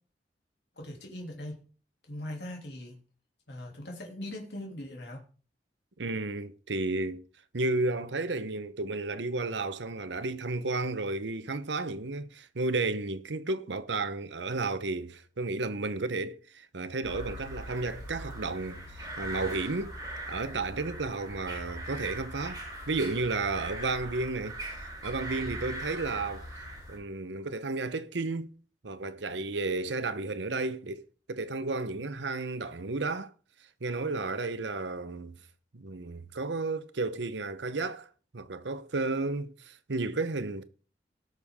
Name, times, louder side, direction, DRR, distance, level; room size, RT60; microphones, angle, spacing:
voice 1, 0.8-1.6 2.1-3.0 3.5-5.2, left 1 dB, 70° left, 2.8 m, -40 dB
voice 2, 6.0-7.2 7.5-19.9 20.3-22.6 22.9-24.6 25.0-26.5 26.9-28.5 28.8-31.0 31.3-33.3 33.8-35.4 35.7-38.1 38.3-40.6, right 3 dB, 90° right, 0.9 m, -32 dB
sound 1, 17.0-27.0, right 1 dB, 20° right, 3.9 m, -40 dB
18.5 x 6.6 x 3.7 m
head